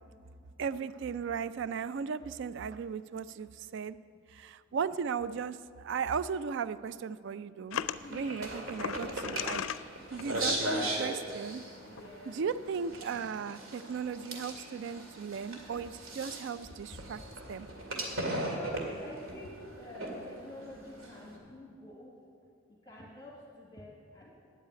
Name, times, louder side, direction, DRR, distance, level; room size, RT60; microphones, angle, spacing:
voice 1, 0.6-4.0 4.3-7.8 8.1-9.6 10.1-11.6 12.3-17.2 17.5-17.7, right 6 dB, 60° right, 15 dB, 0.4 m, -36 dB
sound 1, 7.7-8.0 8.8-9.8 10.2-10.6 11.6-11.7 12.0-12.1, left 9 dB, 90° left, 0.4 m, -36 dB
sound 2, 7.9-21.4, right 1 dB, 85° right, 2.1 m, -38 dB
voice 2, 8.0-8.6 9.0-9.1 11.8-12.4 18.5-22.2 22.7-24.5, left 1 dB, 20° left, -4 dB, 1.7 m, -48 dB
9.4 x 8.8 x 9.3 m, 2.3 s
head